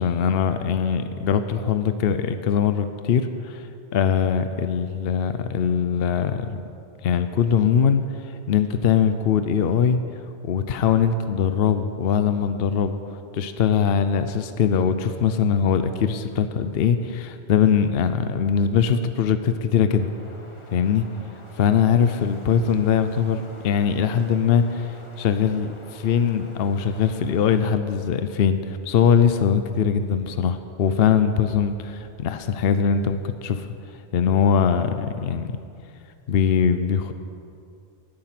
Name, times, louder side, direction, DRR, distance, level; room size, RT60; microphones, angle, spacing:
voice 1, 0.0-3.7 3.9-6.6 7.0-8.0 8.5-10.0 10.4-13.0 13.3-20.1 20.7-21.1 21.6-33.7 34.1-35.5 36.3-37.1, left 7 dB, 65° left, 9 dB, 0.9 m, -21 dB
Wind, 19.9-27.6, left 1 dB, 30° left, 1.2 m, -47 dB
18.5 x 8.8 x 5.9 m, 2.5 s
omnidirectional pair, 1.1 m